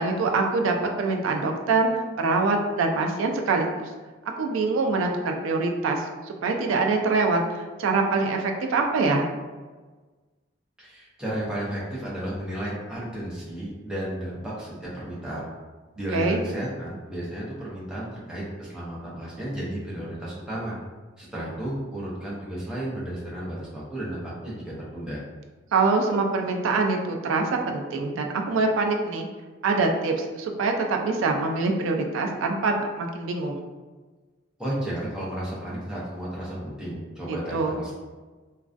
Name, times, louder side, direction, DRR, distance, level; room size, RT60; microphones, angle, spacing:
voice 1, 0.0-1.9 2.2-3.9 4.4-9.3 16.1-16.4 25.7-29.3 29.6-33.6 37.5-37.8, right 3 dB, 85° right, 3 dB, 0.3 m, -24 dB
voice 2, 10.8-15.5 16.0-20.7 21.2-25.2 34.6-37.9, right 1 dB, 5° right, -8 dB, 0.5 m, -33 dB
2.3 x 2.2 x 2.4 m, 1.3 s
head